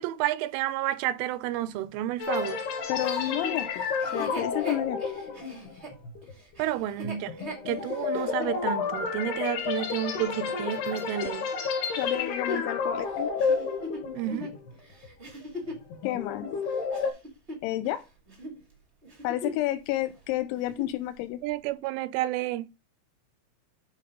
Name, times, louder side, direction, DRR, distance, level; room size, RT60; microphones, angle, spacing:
voice 1, 0.0-2.6 6.6-7.4 7.7-11.5 14.1-14.5 21.4-22.7, right 13 dB, 85° right, 2.9 m, -30 dB
sound 1, 2.2-14.7 15.0-15.3 15.8-17.1, left 5 dB, 60° left, 3.7 m, -31 dB
voice 2, 2.9-3.8 4.1-5.0 12.0-13.3 16.0-16.5 17.6-18.0 19.2-21.4, left 15 dB, 85° left, 2.8 m, -30 dB
Chuckle chortle, 3.0-8.6 9.2-9.3 11.9-15.9 16.5-18.0 18.3-18.6 19.0-19.7 20.0-20.1 20.5-21.0 21.6-21.7, left 1 dB, 60° right, 0.6 m, -40 dB
10.5 x 4.7 x 3.7 m
omnidirectional pair, 5.7 m